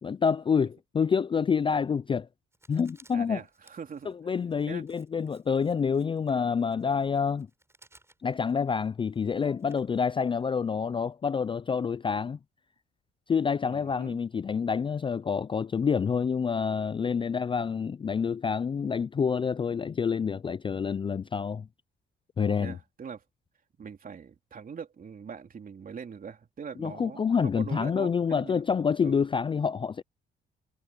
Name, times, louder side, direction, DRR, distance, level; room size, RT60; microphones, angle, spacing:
voice 1, 0.0-2.3 2.7-3.4 4.3-7.5 8.2-12.4 13.3-21.7 22.4-22.8 26.8-30.0, left 6 dB, 25° left, 0.3 m, -27 dB
Writing, 2.5-10.5, right 2 dB, 15° right, 5.1 m, -62 dB
voice 2, 3.1-4.1 4.6-4.8 13.6-14.2 22.4-23.2 23.8-28.6 29.0-29.2, right 6 dB, 45° right, 3.4 m, -42 dB
cardioid pair, 90°, 20 cm